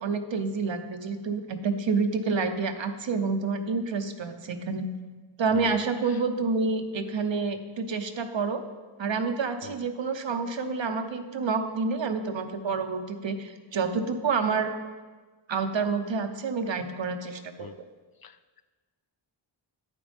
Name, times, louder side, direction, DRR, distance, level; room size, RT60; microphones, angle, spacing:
voice 1, 0.0-4.9 5.4-8.6 9.0-14.7 15.5-17.7, right 4 dB, 65° right, 7 dB, 0.9 m, -28 dB
voice 2, 18.2-18.6, left 7 dB, 50° left, 12 dB, 0.5 m, -44 dB
9.3 x 9.3 x 3.5 m, 1.3 s
cardioid pair, 55°, 49 cm